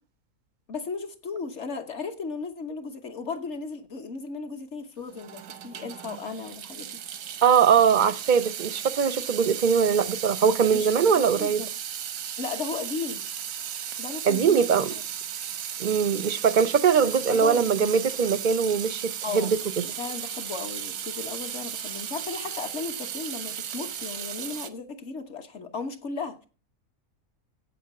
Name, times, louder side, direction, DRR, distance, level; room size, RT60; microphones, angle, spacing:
voice 1, 0.7-7.0 10.7-11.7 12.4-13.2 14.0-15.0 17.0-18.0 19.2-19.5 19.8-26.5, left 4 dB, 55° left, 1.4 m, -36 dB
Water tap faucet / Sink (filling or washing) / Drip, 5.1-24.7, right 9 dB, 90° right, 1.3 m, -35 dB
voice 2, 7.4-11.6 14.2-14.9 15.8-19.6, right 7 dB, 50° right, 0.6 m, -22 dB
8.2 x 7.1 x 7.0 m
omnidirectional pair, 1.5 m